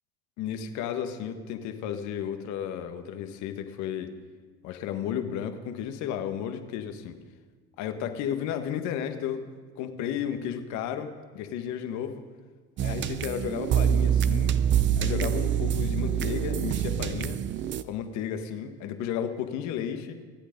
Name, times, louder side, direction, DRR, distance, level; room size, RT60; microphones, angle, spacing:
voice 1, 0.4-4.1 4.6-7.2 7.8-9.5 9.8-12.2 12.8-14.6 15.0-17.4 17.8-20.2, left 9 dB, 60° left, 8 dB, 1.7 m, -33 dB
sound 1, 12.8-17.8, right 9 dB, 35° right, 0.7 m, -26 dB
25.0 x 8.4 x 5.3 m, 1.4 s
supercardioid pair, 110°, 32 cm